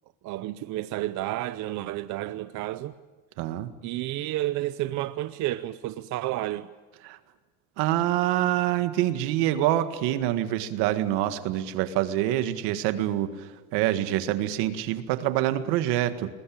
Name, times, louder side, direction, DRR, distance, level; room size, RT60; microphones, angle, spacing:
voice 1, 0.2-2.9 3.8-6.7, right 15 dB, 40° right, 0.6 m, -31 dB
voice 2, 3.4-3.7 7.0-7.2 7.8-16.3, right 13 dB, 70° right, 1.9 m, -26 dB
21.5 x 20.5 x 8.8 m
cardioid pair, 165°, 43 cm